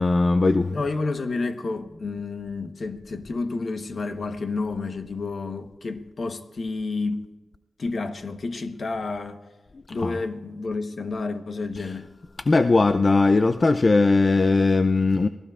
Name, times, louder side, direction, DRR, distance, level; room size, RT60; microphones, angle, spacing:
voice 1, 0.0-0.8 10.0-10.1 12.5-15.3, left 3 dB, 45° left, 0.5 m, -19 dB
voice 2, 0.7-7.3 7.8-9.4 9.9-12.1, left 3 dB, 60° left, 1.1 m, -30 dB
28.5 x 17.5 x 2.5 m
cardioid pair, 60°, 0 cm